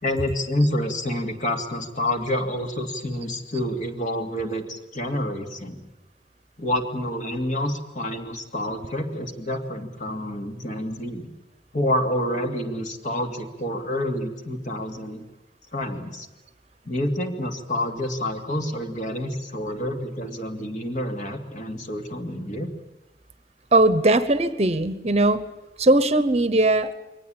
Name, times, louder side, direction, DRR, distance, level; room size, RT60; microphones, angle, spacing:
voice 1, 0.0-5.8 6.6-11.3 11.7-15.3 15.7-16.3 16.8-22.7, left 1 dB, 45° left, 4 dB, 2.8 m, -28 dB
voice 2, 23.7-25.5 25.8-26.9, right 2 dB, 35° right, 12 dB, 1.0 m, -19 dB
23.5 x 18.5 x 8.7 m, 1.0 s
head